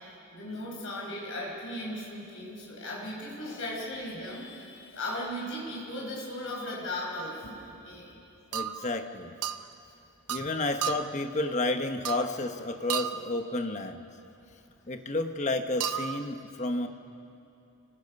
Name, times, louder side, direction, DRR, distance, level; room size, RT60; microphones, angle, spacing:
voice 1, 0.3-8.1 10.4-10.5, left 1 dB, 60° left, -3 dB, 5.2 m, -37 dB
sound 1, 7.2-7.4 8.5-8.9 9.4-9.7 10.3-10.5 10.8-11.2 12.0-12.4 12.9-13.3 15.8-16.2, right 9 dB, 90° right, 0.8 m, -33 dB
voice 2, 8.5-9.3 10.3-14.0 14.9-16.9, left 2 dB, 30° left, 6 dB, 1.1 m, -31 dB
29.5 x 19.0 x 5.4 m, 2.7 s
head